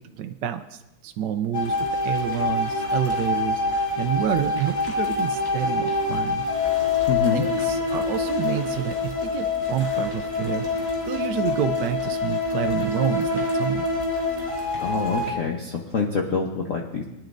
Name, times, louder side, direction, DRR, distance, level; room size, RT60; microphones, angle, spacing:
voice 1, 0.0-1.8 2.0-3.6 4.0-6.4 6.8-6.9 7.3-10.7 11.0-13.9, right 10 dB, 70° right, 6 dB, 1.1 m, -28 dB
sound 1, 1.5-15.3, left 3 dB, 10° left, 2.9 m, -26 dB
voice 2, 7.1-7.4 14.8-17.0, left 4 dB, 50° left, 0 dB, 1.1 m, -26 dB
22.5 x 10.5 x 2.6 m, 0.95 s
omnidirectional pair, 2.2 m